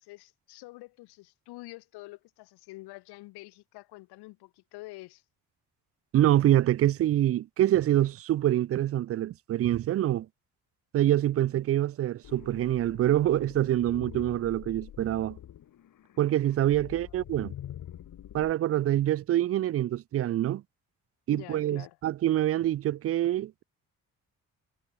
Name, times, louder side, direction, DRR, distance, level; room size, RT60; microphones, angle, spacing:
voice 1, 0.0-5.2 16.7-16.9 21.3-22.0, left 21 dB, 80° left, 1.0 m, -47 dB
voice 2, 6.1-10.3 10.9-15.4 16.2-17.5 18.3-20.6 21.3-23.6, right 13 dB, 40° right, 0.4 m, -25 dB
sound 1, 12.2-18.5, left 11 dB, 55° left, 1.2 m, -45 dB
supercardioid pair, 60°, 39 cm